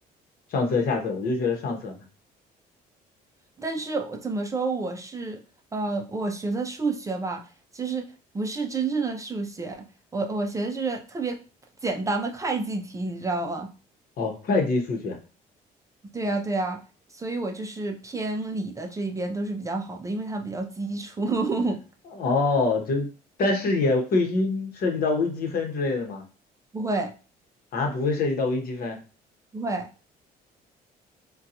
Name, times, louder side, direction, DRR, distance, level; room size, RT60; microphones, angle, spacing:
voice 1, 0.5-1.9 14.2-15.2 22.2-23.1 23.4-26.2 27.7-29.0, left 3 dB, 60° left, 3 dB, 0.9 m, -25 dB
voice 2, 3.6-5.4 5.7-7.4 7.7-8.1 8.3-9.8 10.1-11.4 11.8-13.7 16.1-16.8 17.1-21.8 26.7-27.1 29.5-29.9, right 3 dB, 20° right, 3 dB, 0.4 m, -29 dB
3.7 x 2.2 x 2.8 m, 0.35 s
cardioid pair, 110°, 17 cm